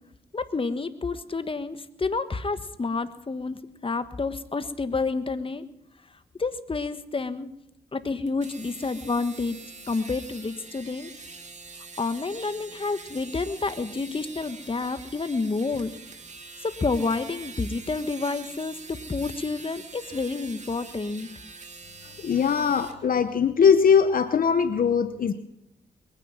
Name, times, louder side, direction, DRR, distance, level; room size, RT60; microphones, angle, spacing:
voice 1, 0.3-5.6 6.4-7.5 7.9-9.6 9.9-11.1 12.0-15.9 16.6-21.3, left 3 dB, 35° left, 11 dB, 1.4 m, -29 dB
sound 1, 8.3-23.0, right 3 dB, 45° right, 2.4 m, -44 dB
voice 2, 22.2-25.3, left 6 dB, 60° left, 11 dB, 0.9 m, -21 dB
21.5 x 10.0 x 5.9 m, 0.84 s
cardioid pair, 55°, 16 cm